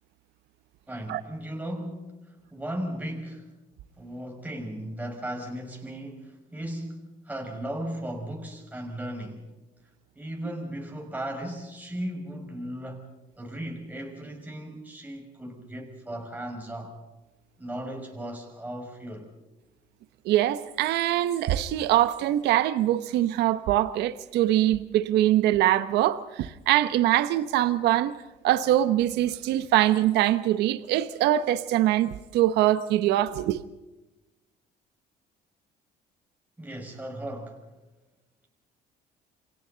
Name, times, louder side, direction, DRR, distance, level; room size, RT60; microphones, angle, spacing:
voice 1, 0.9-3.5 4.0-9.4 10.1-13.1 13.4-17.0 17.6-19.3 36.6-37.7, right 1 dB, 10° right, 5.8 m, -36 dB
voice 2, 20.2-28.1 28.4-33.6, right 13 dB, 85° right, 1.0 m, -23 dB
29.0 x 24.0 x 4.0 m
cardioid pair, 110°, 17 cm